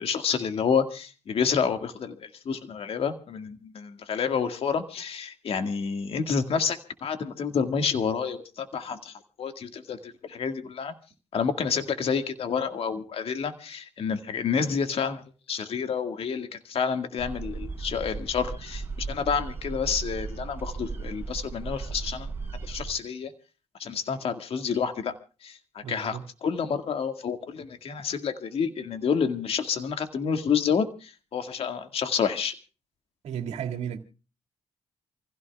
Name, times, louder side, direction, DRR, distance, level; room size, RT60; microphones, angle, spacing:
voice 1, 0.0-11.0 11.3-15.2 15.5-22.3 22.6-23.3 23.8-25.2 25.4-32.5, left 6 dB, 60° left, 2.0 m, -29 dB
sound 1, 17.2-22.9, right 4 dB, 20° right, 4.2 m, -36 dB
voice 2, 25.8-26.2 33.2-34.0, right 8 dB, 85° right, 2.3 m, -33 dB
28.5 x 16.0 x 2.4 m
cardioid pair, 90°, 11 cm